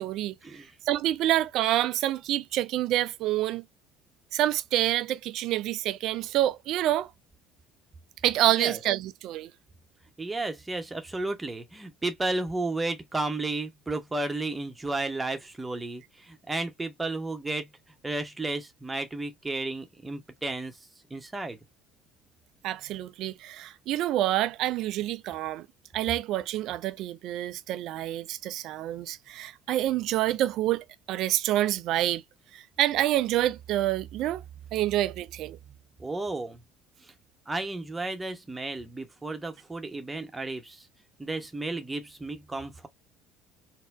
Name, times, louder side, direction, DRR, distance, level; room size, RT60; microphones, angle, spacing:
voice 1, 0.0-0.3 0.9-3.6 4.3-7.1 8.2-9.5 22.6-25.7 25.9-32.2 32.5-34.4 34.7-35.6, right 14 dB, 55° right, 0.3 m, -27 dB
voice 2, 10.2-17.7 18.0-20.7 21.1-21.6 36.0-36.6 37.5-40.9 41.2-42.9, right 2 dB, 15° right, 0.9 m, -33 dB
4.1 x 2.1 x 2.4 m
figure-of-eight pair, 55°, 0 cm